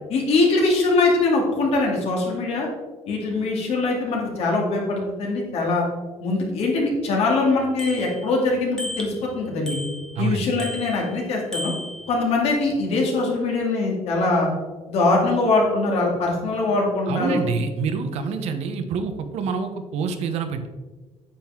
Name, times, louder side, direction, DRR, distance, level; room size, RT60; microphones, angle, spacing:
voice 1, 0.1-2.7 3.1-5.8 6.2-9.8 10.2-11.7 12.1-14.5 14.9-17.4, left 3 dB, 60° left, -1 dB, 2.5 m, -22 dB
Bicycle bell, 7.2-7.3 7.8-8.4 8.8-9.3 9.7-10.3 10.6-11.1 11.5-12.2, left 1 dB, 5° left, 1.2 m, -34 dB
voice 2, 10.1-10.5 17.1-20.7, right 5 dB, 65° right, 8 dB, 0.9 m, -26 dB
8.8 x 7.7 x 3.7 m, 1.3 s
cardioid pair, 165°, 12 cm